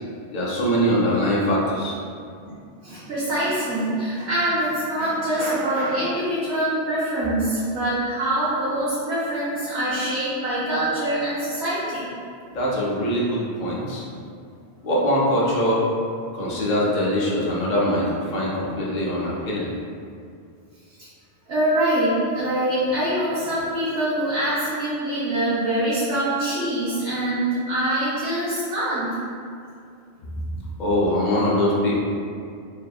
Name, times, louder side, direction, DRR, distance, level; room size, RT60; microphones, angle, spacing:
voice 1, 0.3-2.0 12.5-14.0 14.8-15.8 16.3-19.7 30.5-32.0, equal, 55° left, -5 dB, 0.6 m, -22 dB
voice 2, 2.8-12.1 21.0-21.1 21.5-29.1, right 1 dB, 70° right, -11 dB, 1.0 m, -24 dB
2.7 x 2.5 x 2.3 m, 2.4 s
omnidirectional pair, 1.1 m